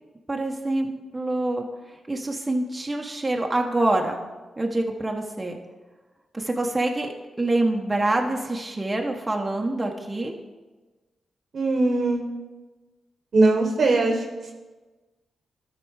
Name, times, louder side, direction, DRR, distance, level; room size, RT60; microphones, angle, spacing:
voice 1, 0.3-4.2 4.6-5.6 6.3-10.3, right 2 dB, 25° right, 1 dB, 1.0 m, -26 dB
voice 2, 11.5-12.2 13.3-14.2, right 2 dB, 60° right, 2 dB, 1.1 m, -20 dB
12.5 x 4.2 x 4.7 m, 1.2 s
supercardioid pair, 50°, 0 cm